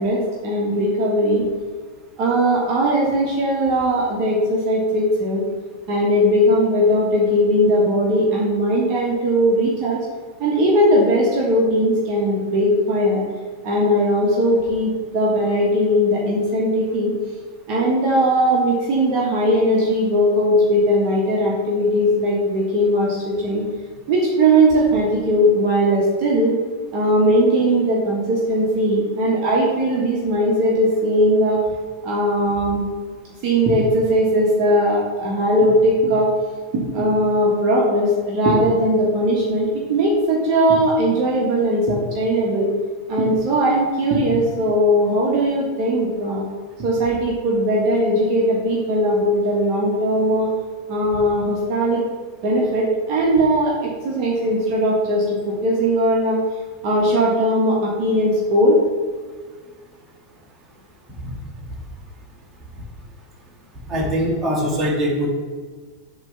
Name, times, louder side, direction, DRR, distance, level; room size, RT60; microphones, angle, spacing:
voice 1, 0.0-1.5 2.2-5.4 5.9-10.0 10.4-13.2 13.6-17.1 17.7-23.6 24.1-26.5 26.9-31.6 32.0-32.9 33.4-36.3 36.7-42.7 43.1-46.4 46.8-50.5 50.9-52.0 52.4-56.4 56.8-58.8, equal, 40° right, -4 dB, 1.4 m, -19 dB
voice 2, 63.9-65.3, equal, 20° right, -2 dB, 1.9 m, -21 dB
7.7 x 3.3 x 5.8 m, 1.5 s
figure-of-eight pair, 90°, 0 cm